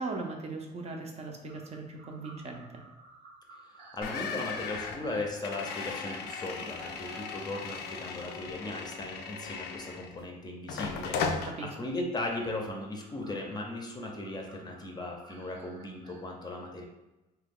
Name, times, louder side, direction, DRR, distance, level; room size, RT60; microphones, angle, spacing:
voice 1, 0.0-2.8 11.6-11.8, right 3 dB, 40° right, 2 dB, 0.5 m, -39 dB
sound 1, 1.4-7.8 8.3-8.4 9.8-9.9 12.2-16.2, right 2 dB, 75° right, 0.7 m, -53 dB
voice 2, 3.8-16.8, left 2 dB, 25° left, 1 dB, 0.5 m, -37 dB
sound 2, 4.0-10.2 10.7-11.5, left 5 dB, 80° left, 0.4 m, -37 dB
2.9 x 2.3 x 3.5 m, 1.0 s
cardioid pair, 110°, 17 cm